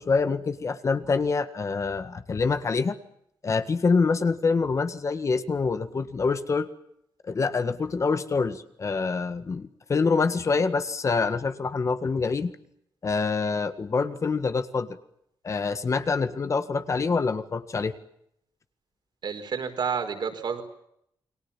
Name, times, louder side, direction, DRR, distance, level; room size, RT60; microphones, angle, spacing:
voice 1, 0.0-3.0 3.4-6.7 7.3-12.5 13.0-15.0 15.4-18.0, left 4 dB, 35° left, 11 dB, 1.8 m, -26 dB
voice 2, 19.2-20.6, right 6 dB, 60° right, 6 dB, 5.0 m, -30 dB
29.0 x 23.0 x 7.4 m, 0.76 s
wide cardioid pair, 140°, 8 cm